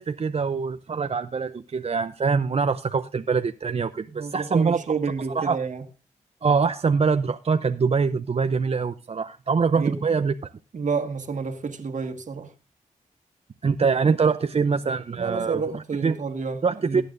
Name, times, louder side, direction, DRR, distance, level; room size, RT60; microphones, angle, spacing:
voice 1, 0.0-4.8 5.3-5.6 6.4-10.5 13.6-16.1 16.6-17.0, right 5 dB, 50° right, 0.6 m, -24 dB
voice 2, 4.1-5.8 9.7-9.9 10.7-12.5 15.1-17.0, right 5 dB, 65° right, 1.7 m, -29 dB
20.0 x 8.9 x 2.6 m
cardioid pair, 60°, 14 cm